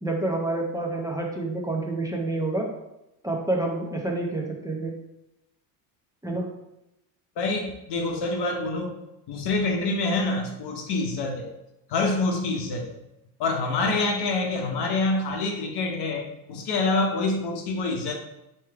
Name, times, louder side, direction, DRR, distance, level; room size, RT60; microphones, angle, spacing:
voice 1, 0.0-2.7 3.2-4.9 6.2-6.4, right 2 dB, 5° right, -1 dB, 0.9 m, -28 dB
voice 2, 7.4-9.0 9.3-11.5 11.9-13.0 13.4-18.1, left 3 dB, 55° left, 2 dB, 0.9 m, -26 dB
3.2 x 3.1 x 4.6 m, 0.88 s
hypercardioid pair, 75°, 50 cm